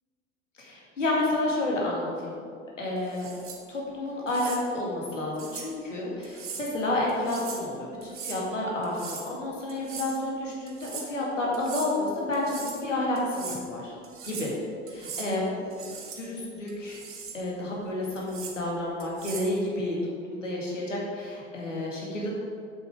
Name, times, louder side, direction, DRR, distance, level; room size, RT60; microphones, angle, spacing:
voice 1, 0.6-2.3 2.8-3.3 3.7-12.5 12.8-13.9 14.2-14.5 14.9-17.0 17.3-20.0 20.3-22.3, left 1 dB, 80° left, -4 dB, 2.1 m, -30 dB
sound 1, 3.1-3.6 4.3-4.6 5.4-5.7 6.2-6.7 7.1-7.7 8.0-8.4 8.8-9.3 9.7-10.2 10.7-11.1 11.5-11.9 12.3-12.8 13.1-13.6 14.0-14.5 14.9-15.3 15.7-16.2 16.7-17.4 18.2-18.6 19.0-19.5, right 6 dB, 35° right, 1.8 m, -40 dB
8.1 x 7.7 x 4.9 m, 2.3 s
figure-of-eight pair, 75°, 37 cm